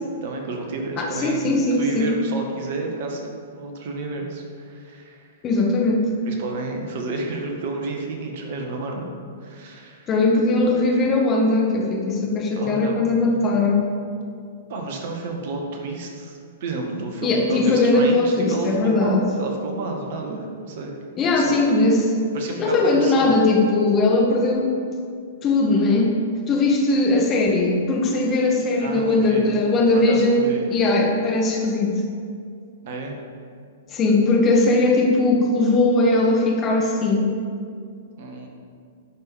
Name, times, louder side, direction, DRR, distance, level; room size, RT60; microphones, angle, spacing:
voice 1, 0.2-5.3 6.3-9.1 9.4-10.1 12.5-13.4 14.7-20.9 21.3-21.5 22.3-23.4 28.8-29.5 29.9-30.6 32.8-33.2 38.2-38.5, right 3 dB, 50° right, 2 dB, 1.7 m, -31 dB
voice 2, 1.0-2.1 5.4-6.1 10.1-13.8 17.2-19.2 21.2-22.1 22.6-24.7 25.4-26.2 26.5-31.9 33.9-37.3, left 2 dB, 25° left, -1 dB, 2.0 m, -19 dB
11.5 x 6.0 x 7.2 m, 2.2 s
figure-of-eight pair, 105°, 0 cm